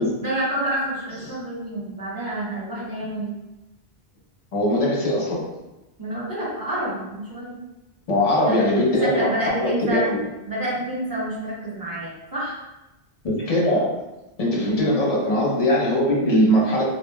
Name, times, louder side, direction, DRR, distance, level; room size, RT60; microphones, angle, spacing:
voice 1, 0.2-3.3 6.0-7.6 8.4-10.1 10.4-12.6 14.7-15.0, right 1 dB, 20° right, -8 dB, 0.7 m, -28 dB
voice 2, 4.5-5.4 8.1-9.3 9.6-10.2 13.2-13.9 14.4-16.8, equal, 40° left, -5 dB, 0.7 m, -20 dB
2.9 x 2.0 x 2.2 m, 0.99 s
omnidirectional pair, 1.1 m